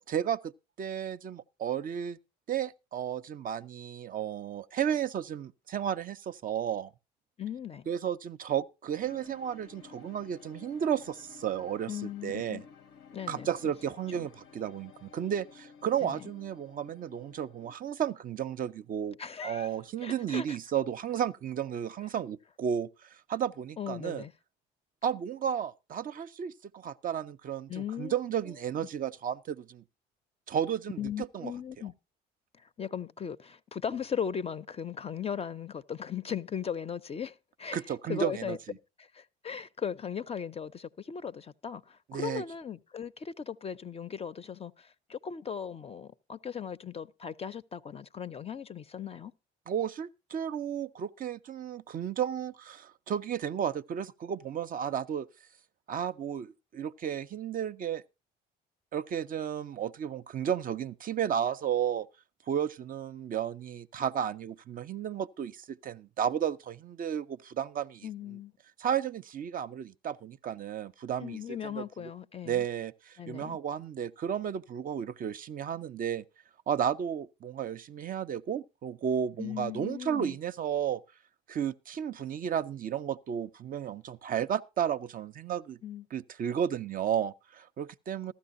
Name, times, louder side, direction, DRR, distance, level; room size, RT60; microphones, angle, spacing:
voice 1, 0.1-0.5 0.8-2.2 2.5-6.9 7.9-12.6 13.3-19.2 19.4-24.2 25.0-29.8 30.5-31.5 37.7-38.8 42.1-42.4 49.7-55.3 55.9-58.0 58.9-62.1 62.5-68.1 68.8-71.4 71.7-72.1 72.4-76.2 76.7-81.0 81.5-85.8 86.1-88.3, right 9 dB, 45° right, 0.5 m, -33 dB
voice 2, 7.4-7.9 11.9-12.6 13.1-13.7 14.1-14.3 16.0-16.2 19.2-19.7 20.0-20.6 23.8-24.3 27.7-28.1 31.0-31.9 32.6-38.6 39.0-49.3 68.0-68.5 71.2-72.6 73.2-73.6 79.4-80.4 85.8-86.1, left 8 dB, 30° left, 0.5 m, -38 dB
sound 1, 8.9-17.7, left 6 dB, 80° left, 0.9 m, -54 dB
14.5 x 12.5 x 2.5 m
supercardioid pair, 70°, 20 cm